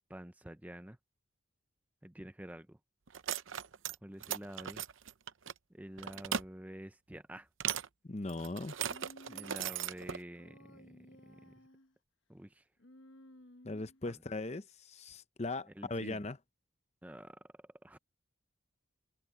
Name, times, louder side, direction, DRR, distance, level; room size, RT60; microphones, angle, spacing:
voice 1, 0.1-1.0 2.0-2.8 4.0-4.8 5.7-7.5 9.3-11.0 11.3-11.5 12.3-12.6 14.1-14.2 15.8-16.2 17.0-17.4 17.8-18.0, right 1 dB, 5° right, 0.5 m, -48 dB
sound 1, 3.1-4.0 4.2-5.5 6.0-6.5 7.6-7.9 8.3-10.2, right 9 dB, 75° right, 0.7 m, -37 dB
voice 2, 8.1-8.7 13.6-16.4, left 2 dB, 30° left, 0.7 m, -39 dB
Human voice, 8.9-9.8 10.4-11.9 12.8-14.1, left 1 dB, 65° left, 1.2 m, -57 dB
open air
head